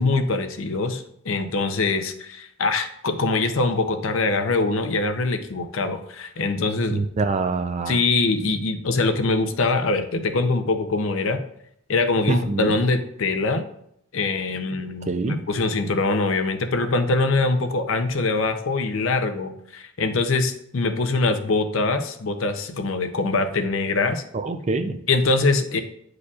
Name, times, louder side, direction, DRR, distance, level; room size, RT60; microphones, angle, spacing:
voice 1, 0.0-7.0 7.9-11.4 11.9-13.6 14.1-24.2 25.1-25.8, left 3 dB, 65° left, 8 dB, 0.6 m, -23 dB
voice 2, 6.9-8.0 12.3-12.7 15.1-15.4 24.3-25.0, right 3 dB, 30° right, 8 dB, 0.4 m, -25 dB
9.6 x 4.9 x 2.4 m, 0.72 s
head